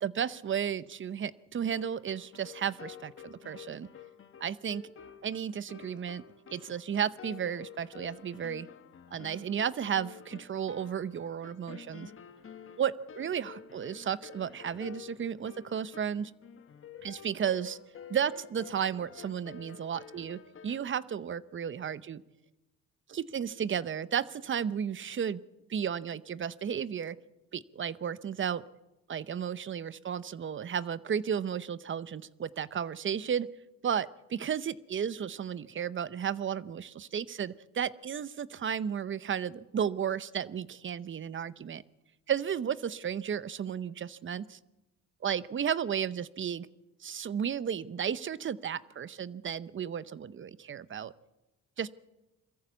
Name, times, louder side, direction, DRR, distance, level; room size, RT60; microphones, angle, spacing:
voice 1, 0.0-3.9 4.4-4.8 5.2-6.2 6.5-8.7 9.1-12.1 12.8-16.3 17.0-17.8 18.1-22.2 23.1-25.4 25.7-27.2 27.5-28.6 29.1-33.5 33.8-41.8 42.3-44.6 45.2-46.7 47.0-51.1 51.8-51.9, right 8 dB, 40° right, 17 dB, 0.7 m, -33 dB
sound 1, 1.6-20.8, left 8 dB, 45° left, 1.4 m, -50 dB
22.0 x 14.5 x 8.2 m, 1.0 s
cardioid pair, 90°, 30 cm